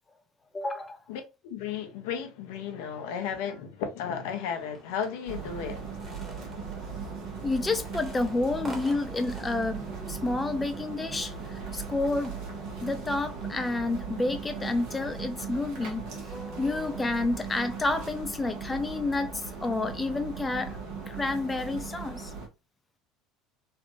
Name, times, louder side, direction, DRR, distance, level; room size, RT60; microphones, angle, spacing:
voice 1, 0.5-1.0 7.4-12.4 12.8-20.8 21.1-22.3, left 2 dB, 20° left, 0.4 m, -30 dB
voice 2, 1.1-5.8, left 7 dB, 65° left, 0.7 m, -34 dB
sound 1, 4.3-13.7, right 1 dB, 15° right, 1.4 m, -51 dB
sound 2, 5.3-22.5, right 5 dB, 60° right, 1.1 m, -38 dB
3.2 x 2.5 x 2.9 m
hypercardioid pair, 65°, 0 cm